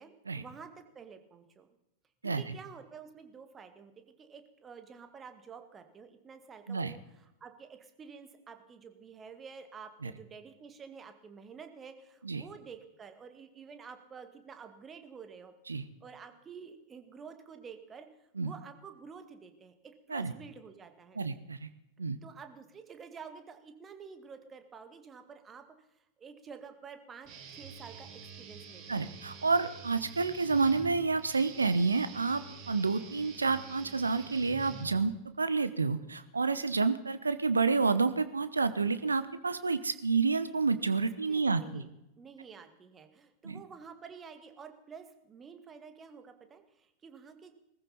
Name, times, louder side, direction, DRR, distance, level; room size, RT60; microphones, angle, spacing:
voice 1, 0.0-1.7 2.2-15.5 16.0-18.1 18.4-21.2 22.2-29.1 41.2-41.9 42.2-47.5, right 6 dB, 20° right, 8 dB, 2.0 m, -50 dB
voice 2, 2.2-2.6 6.7-6.9 10.0-10.1 12.2-12.4 15.7-15.8 18.4-18.5 20.1-20.3 21.2-21.7 22.0-22.2 28.9-41.8 43.4-43.6, right 4 dB, 75° right, 13 dB, 0.9 m, -29 dB
Guitar, 27.3-35.3, right 5 dB, 40° right, 4.7 m, -47 dB
21.0 x 14.5 x 4.2 m, 0.86 s
figure-of-eight pair, 90°, 0 cm